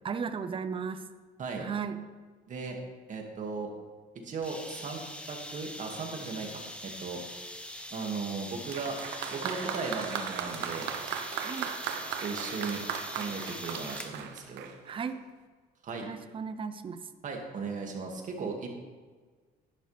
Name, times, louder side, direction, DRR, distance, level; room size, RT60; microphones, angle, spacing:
voice 1, 0.0-1.0 1.6-2.0 11.4-11.7 14.8-15.2 16.0-17.1, right 6 dB, 30° right, 11 dB, 0.7 m, -35 dB
voice 2, 3.1-3.7 4.2-7.2 7.9-9.0 9.3-10.9 12.2-12.8 13.1-14.7 15.8-16.1 17.2-18.7, right 4 dB, 50° right, 2 dB, 2.2 m, -37 dB
sound 1, 4.4-14.2, left 1 dB, 5° left, 1.2 m, -43 dB
Applause, 8.7-15.1, right 8 dB, 85° right, 0.9 m, -37 dB
12.0 x 11.5 x 3.4 m, 1.5 s
cardioid pair, 110°, 17 cm